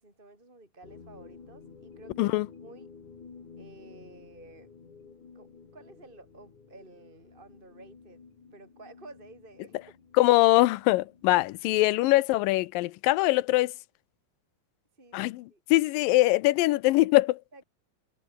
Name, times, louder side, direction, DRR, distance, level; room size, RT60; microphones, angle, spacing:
voice 1, 0.0-2.3 2.6-2.9 3.6-4.7 5.3-8.2 8.5-9.9 15.0-15.6 15.9-16.0 17.5-17.6, right 2 dB, 15° right, 5.1 m, -52 dB
sound 1, 0.8-12.0, left 5 dB, 60° left, 5.9 m, -52 dB
voice 2, 10.2-13.7 15.1-17.6, left 18 dB, 85° left, 2.4 m, -23 dB
omnidirectional pair, 4.0 m